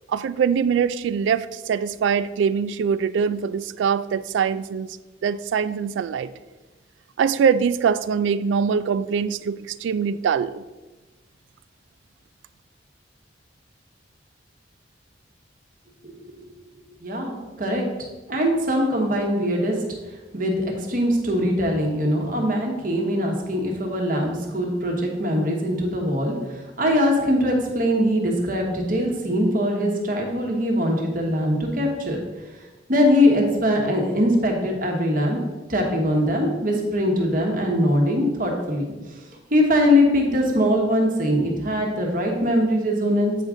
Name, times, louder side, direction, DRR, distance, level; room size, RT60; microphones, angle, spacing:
voice 1, 0.1-4.9 5.2-6.3 7.2-10.6, right 6 dB, 85° right, 15 dB, 0.3 m, -23 dB
voice 2, 17.0-17.8 18.3-19.7 20.3-32.2 32.9-35.4 35.7-39.2 39.5-43.4, equal, 50° right, 1 dB, 1.2 m, -22 dB
7.8 x 4.9 x 3.7 m, 1.2 s
head